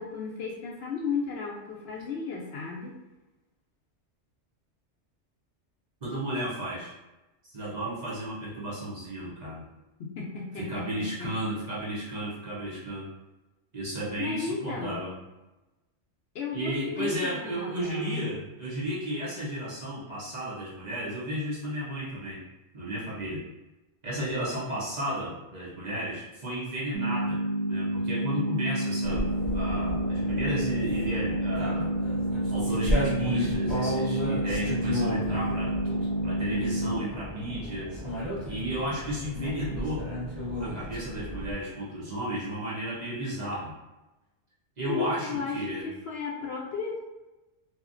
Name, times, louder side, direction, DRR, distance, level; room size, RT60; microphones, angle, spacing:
voice 1, 0.0-3.0 10.0-11.3 14.2-15.0 16.3-18.3 44.9-45.6 45.8-47.0, left 5 dB, 65° left, -2 dB, 0.8 m, -34 dB
voice 2, 6.0-6.9 7.4-9.6 10.5-13.1 13.7-15.2 16.5-22.4 22.7-23.5 24.0-27.4 27.7-29.3 29.5-31.9 32.5-35.8 36.2-37.9 38.5-40.1 40.6-43.7 44.8-45.9, right 1 dB, 40° right, -8 dB, 0.8 m, -33 dB
sound 1, 26.9-36.9, right 1 dB, 80° right, 1.1 m, -29 dB
sound 2, 29.0-41.5, equal, 20° right, 1.5 m, -33 dB
2.8 x 2.4 x 2.4 m, 1.0 s
omnidirectional pair, 1.2 m